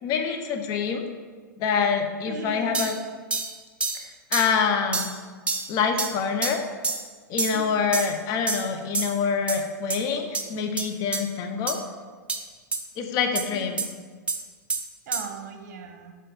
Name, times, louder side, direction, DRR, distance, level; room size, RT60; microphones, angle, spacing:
voice 1, 0.0-1.0 1.6-3.0 4.0-5.1 5.7-6.6 7.3-11.8 13.0-13.8, left 6 dB, 40° left, 5 dB, 0.8 m, -26 dB
voice 2, 2.3-2.8 7.5-7.8 13.4-13.7 15.1-16.1, right 5 dB, 55° right, 4 dB, 1.0 m, -38 dB
sound 1, 2.7-2.9 3.3-3.5 3.8-4.0 4.3-4.5 4.9-5.1 5.5-5.7 6.0-6.1 6.4-6.6 6.8-7.0 7.4-7.6 7.9-8.1 8.5-8.7 8.9-9.1 9.5-9.6 9.9-10.0 10.3-10.4 10.8-10.9 11.1-11.2 11.7-11.8 12.3-12.4 12.7-12.8 13.4-13.5 13.8-13.9 14.3-14.4 14.7-14.8 15.1-15.2, right 4 dB, 10° right, 0.7 m, -27 dB
5.3 x 3.9 x 5.7 m, 1.5 s
hypercardioid pair, 105°, 10 cm